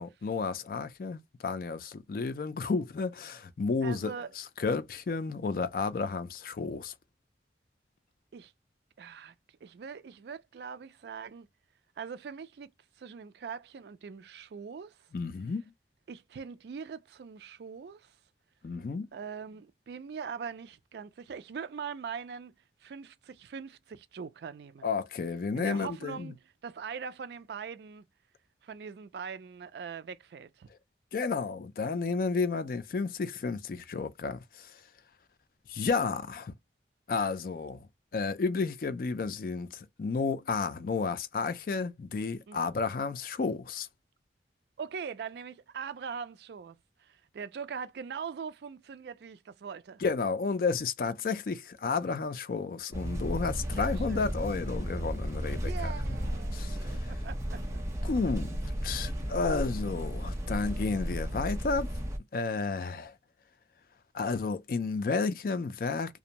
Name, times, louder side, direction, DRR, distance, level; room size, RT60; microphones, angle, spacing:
voice 1, 0.0-6.9 15.1-15.6 18.6-19.1 24.8-26.3 31.1-34.8 35.7-36.5 37.1-37.9 38.1-43.9 50.0-55.9 56.5-57.1 58.0-61.9 62.3-63.1 64.1-66.2, left 4 dB, 50° left, 0.4 m, -32 dB
voice 2, 3.8-4.3 8.3-8.5 9.0-9.3 9.6-11.5 12.0-12.7 13.0-15.0 16.1-18.1 19.1-22.5 22.8-24.9 25.5-28.0 28.6-30.7 42.5-42.7 44.8-50.0 53.6-54.3 55.6-57.8, right 6 dB, 70° right, 0.3 m, -42 dB
sound 1, 52.9-62.2, equal, 15° right, 0.6 m, -34 dB
2.5 x 2.1 x 2.8 m
head